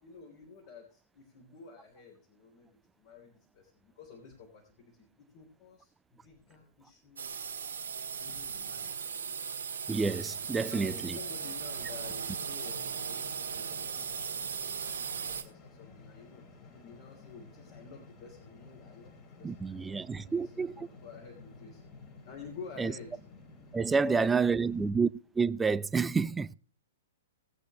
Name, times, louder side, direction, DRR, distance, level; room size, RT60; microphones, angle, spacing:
voice 1, 0.0-7.2 8.1-9.1 10.5-16.4 16.7-23.2 23.9-24.9 26.2-26.3, left 5 dB, 45° left, 3.2 m, -51 dB
sound 1, 7.2-15.4, right 6 dB, 65° right, 1.8 m, -37 dB
sound 2, 9.9-24.9, left 4 dB, 30° left, 2.8 m, -53 dB
voice 2, 9.9-11.2 19.4-20.9 22.8-22.9 23.7-25.1 25.4-26.5, right 5 dB, 10° right, 0.4 m, -29 dB
19.0 x 8.2 x 3.0 m
figure-of-eight pair, 110°, 0 cm